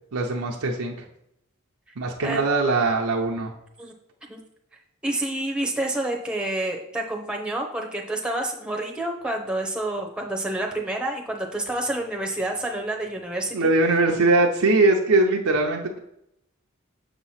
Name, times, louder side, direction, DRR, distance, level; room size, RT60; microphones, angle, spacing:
voice 1, 0.1-0.9 2.0-3.5 13.5-16.0, right 2 dB, 80° right, 0 dB, 0.7 m, -21 dB
voice 2, 5.0-13.7, right 1 dB, 5° right, 1 dB, 0.7 m, -28 dB
6.9 x 3.0 x 5.6 m, 0.79 s
head